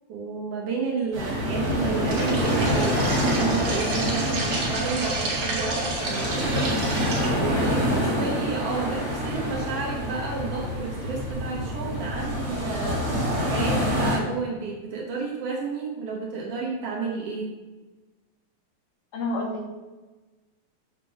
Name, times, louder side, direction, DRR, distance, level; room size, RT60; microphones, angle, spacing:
voice 1, 0.1-6.7 7.3-17.5, right 4 dB, 80° right, -3 dB, 1.3 m, -31 dB
sound 1, 1.1-14.2, equal, 30° right, 2.1 m, -26 dB
sound 2, 2.1-7.3, right 2 dB, 55° right, 1.6 m, -30 dB
voice 2, 7.5-8.1 19.1-19.7, left 2 dB, 75° left, 0 dB, 3.0 m, -31 dB
7.4 x 3.9 x 6.0 m, 1.2 s
omnidirectional pair, 4.4 m